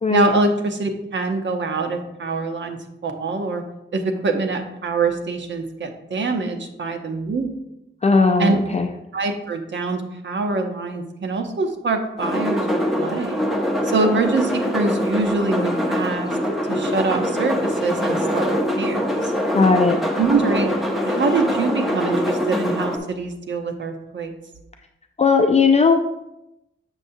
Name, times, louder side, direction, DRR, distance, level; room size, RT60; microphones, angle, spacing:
voice 1, 0.1-3.6 3.9-7.5 8.4-8.6 9.1-16.3 16.7-19.3 20.2-20.8 21.1-24.3, right 3 dB, 65° right, 5 dB, 0.8 m, -24 dB
voice 2, 8.0-8.9 19.5-20.0 25.2-25.9, left 4 dB, 35° left, 4 dB, 0.4 m, -17 dB
sound 1, 12.2-23.0, equal, ahead, 0.9 m, -23 dB
7.1 x 6.5 x 2.7 m, 0.88 s
wide cardioid pair, 135°, 21 cm